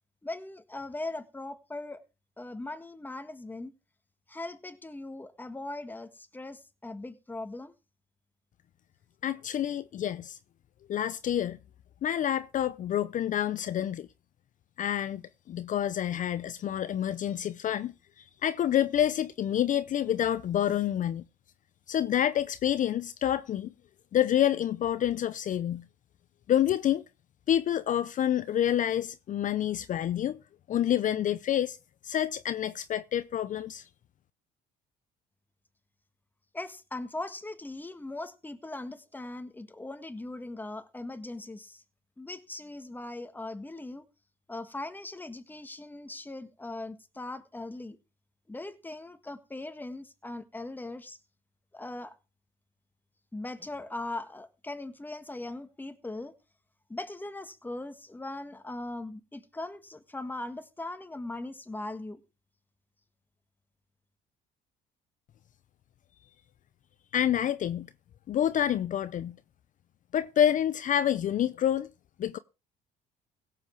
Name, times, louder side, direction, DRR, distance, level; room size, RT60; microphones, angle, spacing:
voice 1, 0.2-2.0 2.4-3.7 4.3-7.7 36.5-41.8 42.2-44.0 44.5-48.0 48.5-51.2 51.7-52.2 53.3-56.3 56.9-62.2, left 2 dB, 10° left, 1.6 m, -40 dB
voice 2, 9.2-10.4 10.9-11.6 12.0-14.1 14.8-15.2 15.5-21.2 21.9-23.7 24.1-25.8 26.5-27.0 27.5-30.4 30.7-31.8 32.0-33.9 67.1-67.9 68.3-69.4 70.1-71.9 72.2-72.4, left 10 dB, 50° left, 0.7 m, -28 dB
16.5 x 7.9 x 4.7 m
cardioid pair, 110°, 17 cm